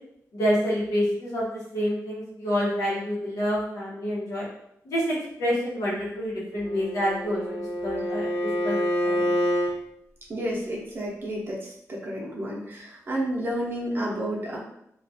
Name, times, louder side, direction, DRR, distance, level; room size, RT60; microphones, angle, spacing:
voice 1, 0.3-1.5 1.7-4.5 4.8-7.4 7.8-8.4 8.6-8.8 9.0-9.4, equal, 75° left, -6 dB, 1.0 m, -27 dB
Bowed string instrument, 6.6-9.8, equal, 25° left, 0.6 m, -27 dB
voice 2, 10.3-14.6, equal, 40° right, -3 dB, 0.6 m, -31 dB
2.3 x 2.3 x 2.6 m, 0.75 s
wide cardioid pair, 165°, 6 cm